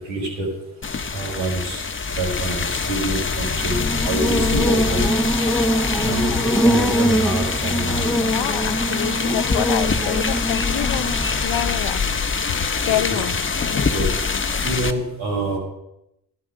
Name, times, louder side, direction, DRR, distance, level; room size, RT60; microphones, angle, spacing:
voice 1, 0.1-0.5 1.1-1.8 2.2-5.1 6.0-6.3 6.6-8.1 12.9-13.0 13.9-14.1 14.6-15.6, right 2 dB, 75° right, 5.1 m, -26 dB
sound 1, 0.8-14.9, left 4 dB, 25° left, 1.3 m, -24 dB
Buzz, 3.6-11.7, equal, ahead, 1.2 m, -23 dB
voice 2, 8.2-11.1 11.4-12.0 12.8-13.3, left 15 dB, 65° left, 0.8 m, -27 dB
12.5 x 12.0 x 6.5 m
hypercardioid pair, 50°, 45 cm